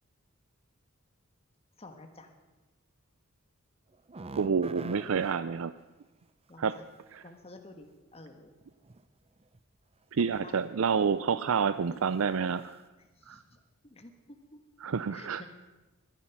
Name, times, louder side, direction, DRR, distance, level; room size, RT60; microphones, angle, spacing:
voice 1, 1.8-2.3 6.5-6.8 7.2-8.5 10.4-10.6 13.2-13.6 13.8-14.6 15.1-15.5, left 2 dB, 30° left, 4 dB, 1.4 m, -51 dB
sound 1, 3.9-5.4 7.6-7.7 8.6-9.0 9.4-9.6 10.3-10.6 11.0-11.2 11.6-11.7, right 3 dB, 30° right, 0.6 m, -44 dB
voice 2, 4.4-5.7 6.6-6.8 7.1-7.2 10.1-12.8 13.3-13.4 14.8-15.4, right 6 dB, 70° right, 13 dB, 0.5 m, -28 dB
21.0 x 11.5 x 6.0 m, 1.2 s
head